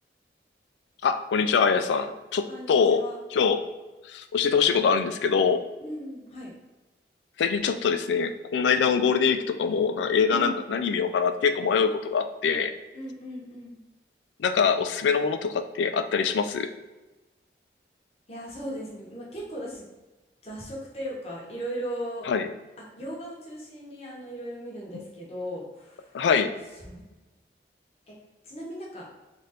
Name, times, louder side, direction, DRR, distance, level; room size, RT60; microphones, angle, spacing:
voice 1, 1.0-3.0 3.3-3.7 4.1-5.6 7.4-12.7 14.4-16.7 22.3-22.5 26.1-26.5, left 6 dB, 85° left, 9 dB, 0.3 m, -24 dB
voice 2, 2.5-3.1 5.8-6.5 10.3-10.7 12.9-13.8 18.3-19.8 20.4-22.3 22.8-26.2 26.7-27.2 28.1-28.2 28.4-29.1, equal, 35° left, -4 dB, 1.0 m, -37 dB
3.3 x 2.5 x 4.1 m, 1.1 s
head